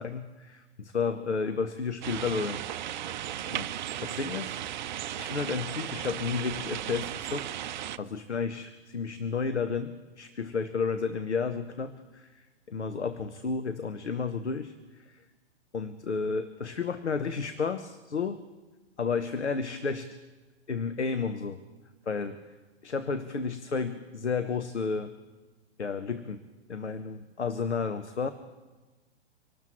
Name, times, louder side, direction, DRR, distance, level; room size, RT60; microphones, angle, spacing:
voice 1, 0.0-2.6 2.9-3.2 3.5-3.7 4.0-4.6 5.2-7.5 8.0-15.3 15.7-18.4 19.0-20.1 20.7-21.6 22.1-22.4 22.8-25.1 25.8-26.4 26.7-28.3, left 5 dB, 80° left, 10 dB, 0.9 m, -32 dB
sound 1, 2.0-8.0, right 11 dB, 45° right, 0.5 m, -36 dB
26.0 x 12.5 x 3.1 m, 1.2 s
figure-of-eight pair, 115°, 34 cm